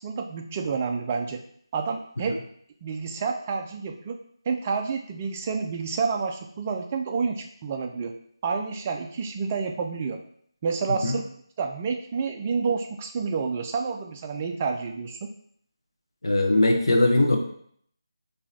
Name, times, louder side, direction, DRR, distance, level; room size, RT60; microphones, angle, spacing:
voice 1, 0.0-1.4 1.7-2.4 2.8-4.2 4.5-8.1 8.4-10.2 10.6-11.2 11.6-15.3, right 5 dB, 20° right, 3 dB, 0.4 m, -29 dB
voice 2, 16.2-17.4, left 1 dB, 70° left, 2 dB, 1.0 m, -20 dB
4.1 x 2.9 x 4.2 m, 0.64 s
figure-of-eight pair, 170°, 3 cm